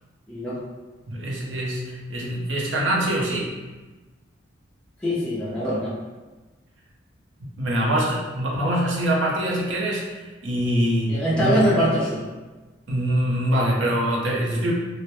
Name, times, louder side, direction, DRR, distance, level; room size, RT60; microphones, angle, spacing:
voice 1, 1.1-3.5 7.6-10.2 10.4-11.6 12.9-14.7, right 1 dB, 65° right, -3 dB, 0.5 m, -24 dB
voice 2, 5.0-5.9 11.1-12.2, equal, 5° left, -9 dB, 0.4 m, -23 dB
2.1 x 2.0 x 2.9 m, 1.2 s
head